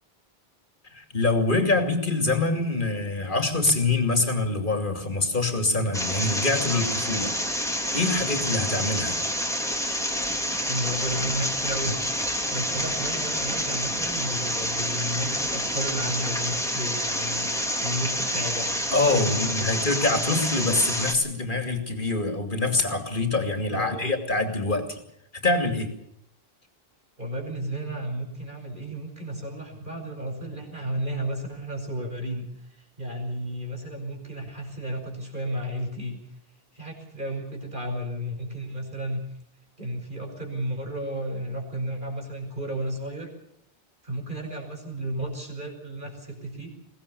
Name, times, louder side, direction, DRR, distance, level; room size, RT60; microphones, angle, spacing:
voice 1, 0.9-7.3 7.9-9.2 18.9-25.0 25.3-25.9, left 3 dB, 55° left, 6 dB, 3.0 m, -25 dB
sound 1, 5.9-21.1, equal, 5° left, 2.6 m, -28 dB
voice 2, 10.7-12.0 12.5-18.7 19.1-20.0 23.7-24.2 27.2-32.5 32.8-36.2 36.7-39.2 39.8-43.3 44.0-46.7, equal, 55° right, 3 dB, 5.6 m, -33 dB
22.5 x 18.5 x 7.0 m, 0.74 s
omnidirectional pair, 1.0 m